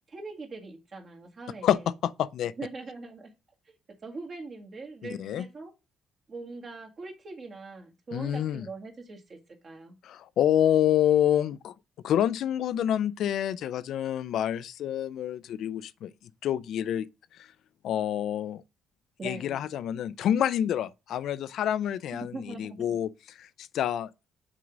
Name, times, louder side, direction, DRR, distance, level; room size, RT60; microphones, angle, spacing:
voice 1, 0.1-1.9 2.6-3.3 3.7-5.7 6.3-9.4 9.6-10.0 19.2-19.7 22.1-23.0, right 3 dB, 45° right, 1.9 m, -42 dB
voice 2, 1.6-2.5 5.2-5.5 8.1-8.7 10.0-11.7 12.0-16.1 16.4-17.1 17.8-18.6 19.2-24.3, left 10 dB, 75° left, 0.4 m, -27 dB
6.2 x 3.8 x 5.9 m
cardioid pair, 90°, 0 cm